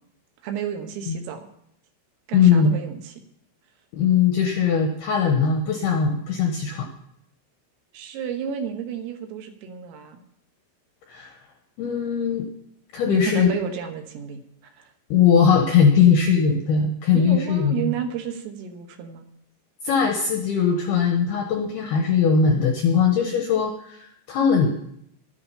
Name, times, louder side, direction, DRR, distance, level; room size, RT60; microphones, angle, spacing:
voice 1, 0.4-1.5 2.3-3.2 7.9-10.2 13.0-14.4 14.8-14.9 17.1-19.3, right 7 dB, 80° right, 5 dB, 3.8 m, -32 dB
voice 2, 2.3-2.8 4.0-6.9 11.1-11.3 11.8-12.5 12.9-13.5 15.1-17.9 19.8-24.7, left 6 dB, 85° left, 3 dB, 2.3 m, -20 dB
11.5 x 10.5 x 5.6 m, 0.73 s
omnidirectional pair, 5.9 m